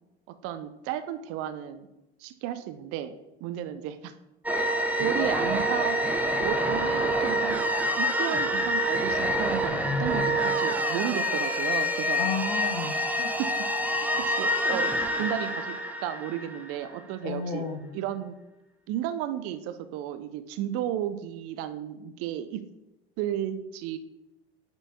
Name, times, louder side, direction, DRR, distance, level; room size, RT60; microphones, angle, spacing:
voice 1, 0.4-1.9 2.2-3.1 3.4-4.1 4.6-6.0 6.4-7.6 8.0-12.2 13.4-13.5 13.8-17.7 17.9-18.4 18.9-22.6 23.2-24.0, right 11 dB, 45° right, 11 dB, 0.5 m, -33 dB
sound 1, 4.4-17.0, equal, 5° right, 0.7 m, -27 dB
voice 2, 12.2-13.3 17.2-17.9, left 5 dB, 70° left, 2 dB, 0.7 m, -32 dB
8.8 x 4.5 x 2.7 m, 0.95 s
figure-of-eight pair, 65°, 32 cm